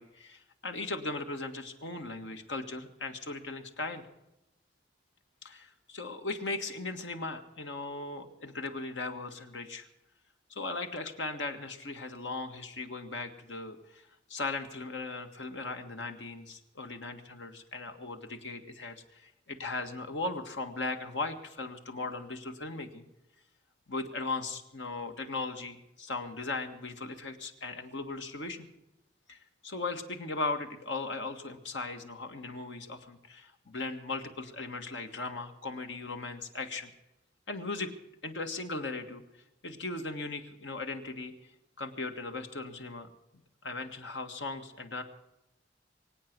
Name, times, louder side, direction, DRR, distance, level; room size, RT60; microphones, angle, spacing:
voice 1, 0.0-4.1 5.4-9.9 10.5-14.0 14.3-19.2 19.5-23.1 23.9-28.7 29.3-29.4 29.6-36.9 37.5-37.9 38.2-39.2 39.6-41.3 41.8-43.1 43.6-45.0, left 3 dB, 85° left, 6 dB, 1.7 m, -38 dB
24.0 x 8.7 x 6.1 m, 0.90 s
head